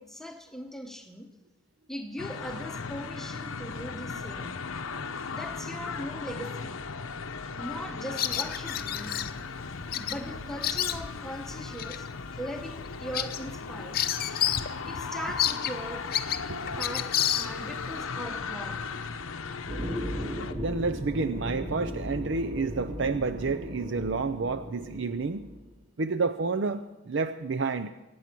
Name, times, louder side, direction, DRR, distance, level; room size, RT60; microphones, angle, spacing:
voice 1, 0.0-1.3 1.9-4.6 5.2-6.8 7.4-9.4 9.9-14.5 14.8-16.1 16.8-18.9, equal, ahead, 0.9 m, -40 dB
sound 1, 2.2-20.5, left 5 dB, 80° left, 0.8 m, -37 dB
Bird vocalization bird call bird song, 8.2-9.3 9.9-10.2 10.4-11.3 11.8-12.0 12.4-12.5 12.8-14.7 15.0-15.1 15.4-17.8, left 11 dB, 45° left, 0.6 m, -29 dB
voice 2, 16.5-16.8 20.5-25.5 26.0-27.9, right 4 dB, 60° right, 0.5 m, -30 dB
sound 2, 19.7-25.7, equal, 30° right, 2.2 m, -36 dB
23.5 x 9.4 x 6.0 m
head